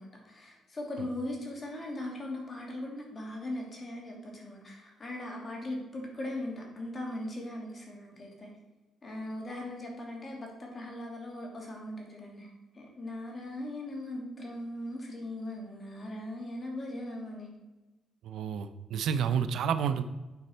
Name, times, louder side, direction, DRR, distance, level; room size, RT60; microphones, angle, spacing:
voice 1, 0.0-8.5 9.0-12.5 12.7-17.5, left 1 dB, 35° left, 0 dB, 2.6 m, -39 dB
voice 2, 18.3-20.0, right 7 dB, 75° right, 11 dB, 0.5 m, -30 dB
9.4 x 5.4 x 4.4 m, 1.1 s
cardioid pair, 90°, 0 cm